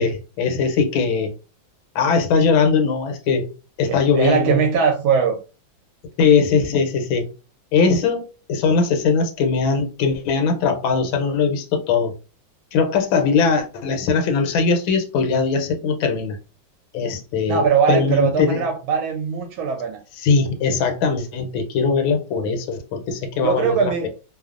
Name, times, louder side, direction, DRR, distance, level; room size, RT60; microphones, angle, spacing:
voice 1, 0.0-1.3 1.9-3.5 3.8-4.6 6.2-7.3 7.7-12.1 12.7-16.4 16.9-18.6 20.2-24.1, left 5 dB, 80° left, 1.4 m, -20 dB
voice 2, 3.9-5.4 17.5-20.0 23.4-24.1, right 6 dB, 80° right, 1.4 m, -20 dB
3.3 x 2.0 x 2.4 m
omnidirectional pair, 2.2 m